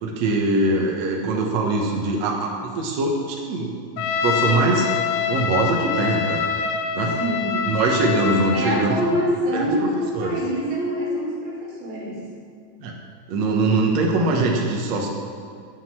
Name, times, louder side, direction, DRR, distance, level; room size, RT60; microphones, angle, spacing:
voice 1, 0.0-4.9 5.3-6.4 6.9-7.1 7.7-9.0 9.5-9.9 10.2-10.4 12.8-12.9 13.3-15.1, right 2 dB, 60° right, 0 dB, 2.1 m, -22 dB
Trumpet, 4.0-8.7, left 7 dB, 85° left, 1.5 m, -25 dB
voice 2, 7.2-7.7 8.0-8.2 8.5-12.2, equal, 75° right, -4 dB, 4.8 m, -25 dB
9.5 x 9.3 x 7.7 m, 2.2 s
omnidirectional pair, 4.2 m